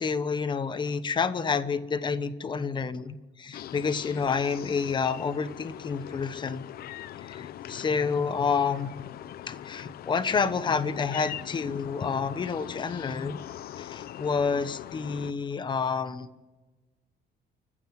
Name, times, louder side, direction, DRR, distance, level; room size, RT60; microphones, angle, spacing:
voice 1, 0.0-6.7 7.2-9.2 9.5-13.4 13.8-16.3, left 5 dB, 25° left, 13 dB, 1.2 m, -29 dB
sound 1, 3.5-15.3, left 12 dB, 55° left, 0.8 m, -41 dB
29.0 x 15.5 x 9.0 m, 1.2 s
cardioid pair, 175°, 19 cm